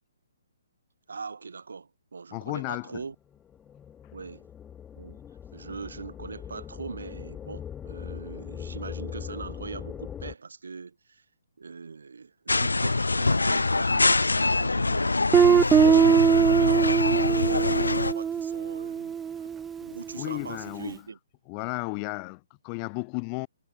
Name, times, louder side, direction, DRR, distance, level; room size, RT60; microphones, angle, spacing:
voice 1, 1.1-3.1 4.1-4.5 5.0-5.2 5.5-11.2 11.6-19.5 19.8-21.2 22.0-22.1, right 5 dB, 70° right, 6.5 m, -41 dB
voice 2, 2.3-3.0 20.2-20.9 21.5-23.5, left 40 dB or more, 30° left, 2.1 m, -33 dB
sound 1, 3.3-10.3, left 9 dB, 15° left, 6.5 m, -40 dB
sound 2, 12.5-18.1, left 3 dB, 85° left, 0.4 m, -24 dB
Guitar, 15.3-20.0, right 7 dB, 10° right, 0.5 m, -22 dB
figure-of-eight pair, 135°, 0 cm